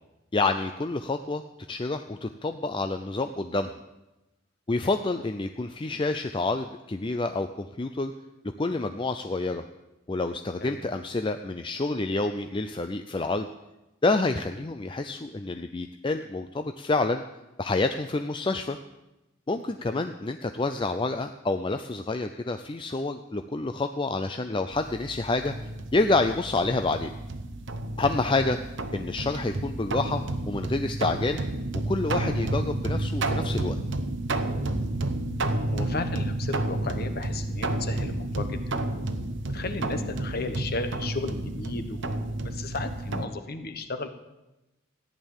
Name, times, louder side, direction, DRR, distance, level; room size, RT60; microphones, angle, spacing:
voice 1, 0.3-1.4 1.7-3.7 4.7-8.1 8.6-9.6 10.1-13.5 14.0-17.2 17.6-18.8 19.5-27.1 28.0-28.6 28.9-31.4 31.8-33.8, left 3 dB, 25° left, 7 dB, 0.4 m, -28 dB
voice 2, 19.7-20.0 35.7-38.6 39.4-44.1, left 3 dB, 45° left, 8 dB, 1.2 m, -34 dB
sound 1, 24.7-43.3, right 2 dB, 55° right, 0.9 m, -31 dB
14.5 x 10.5 x 7.2 m, 0.99 s
head